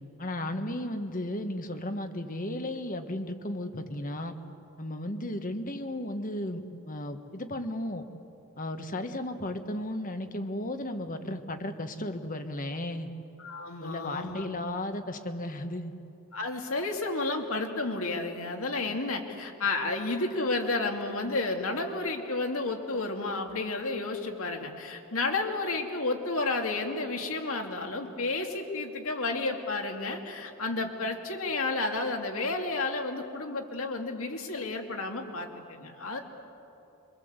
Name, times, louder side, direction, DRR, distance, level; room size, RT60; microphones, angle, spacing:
voice 1, 0.2-4.3 4.8-8.0 8.6-13.1 13.8-15.9, left 1 dB, 35° left, 7 dB, 1.5 m, -34 dB
voice 2, 13.4-14.5 16.3-36.2, left 3 dB, 70° left, 3 dB, 2.7 m, -31 dB
27.0 x 24.0 x 8.2 m, 2.8 s
head